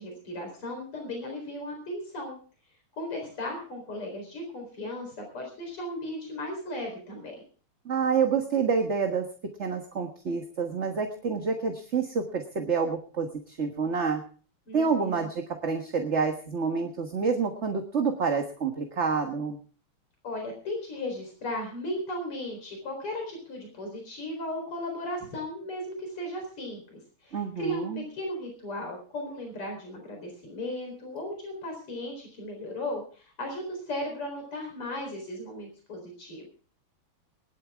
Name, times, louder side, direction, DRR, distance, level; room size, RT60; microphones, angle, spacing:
voice 1, 0.0-2.3 3.0-7.4 14.7-15.3 20.2-27.9 28.1-36.5, left 1 dB, 85° left, 2 dB, 5.1 m, -36 dB
voice 2, 7.8-9.2 9.6-14.2 14.7-19.6 27.3-28.0, right 5 dB, 35° right, 4 dB, 1.5 m, -28 dB
21.0 x 12.0 x 3.6 m, 0.41 s
omnidirectional pair, 2.4 m